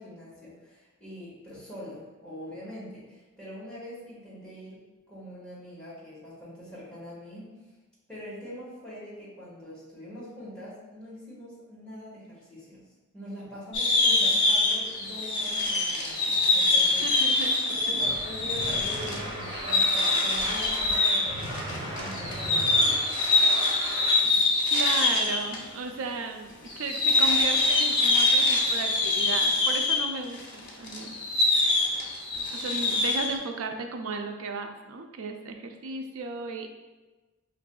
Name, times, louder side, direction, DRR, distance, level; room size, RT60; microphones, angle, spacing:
voice 1, 0.0-4.8 5.1-7.5 8.1-12.8 13.1-17.0 17.7-23.0, left 1 dB, 5° left, -9 dB, 1.3 m, -43 dB
sound 1, 13.7-25.6 25.9-26.0 26.7-33.4, left 2 dB, 60° left, 0.7 m, -24 dB
voice 2, 17.0-18.0 24.7-31.2 32.5-36.7, right 3 dB, 75° right, 5 dB, 0.4 m, -35 dB
sound 2, 18.0-24.2, right 1 dB, 25° right, 0.7 m, -37 dB
5.4 x 2.5 x 2.2 m, 1.2 s
head